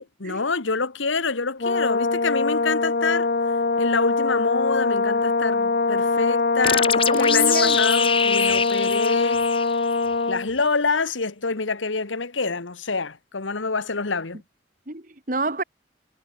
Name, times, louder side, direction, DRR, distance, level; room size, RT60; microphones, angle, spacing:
voice 1, 0.0-3.3 3.8-9.4 10.3-14.4, left 4 dB, 90° left, 1.5 m, -26 dB
Brass instrument, 1.6-10.5, left 3 dB, 55° left, 0.9 m, -22 dB
sound 1, 6.6-10.1, left 7 dB, 30° left, 1.8 m, -25 dB
voice 2, 7.1-7.8 14.9-15.6, right 2 dB, 45° right, 2.3 m, -28 dB
head